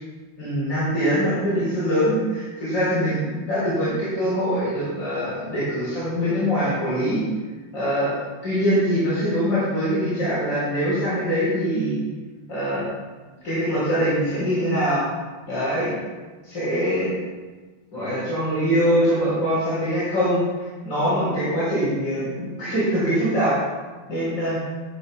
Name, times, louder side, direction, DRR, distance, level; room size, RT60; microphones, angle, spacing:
voice 1, 0.4-7.2 7.7-12.0 12.5-12.9 13.4-15.0 15.5-16.0 16.4-17.1 17.9-23.6 24.1-24.6, equal, 25° left, -10 dB, 4.1 m, -23 dB
14.0 x 11.0 x 2.3 m, 1.3 s
omnidirectional pair, 4.7 m